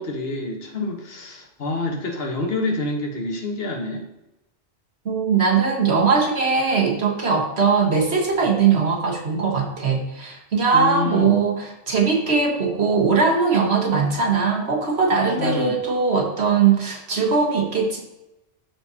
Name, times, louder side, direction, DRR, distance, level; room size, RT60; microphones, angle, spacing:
voice 1, 0.0-4.1 10.7-11.4 15.4-15.8, left 2 dB, 55° left, 2 dB, 1.4 m, -27 dB
voice 2, 5.0-18.0, right 5 dB, 60° right, 0 dB, 1.6 m, -20 dB
13.0 x 4.3 x 2.8 m, 0.92 s
omnidirectional pair, 1.2 m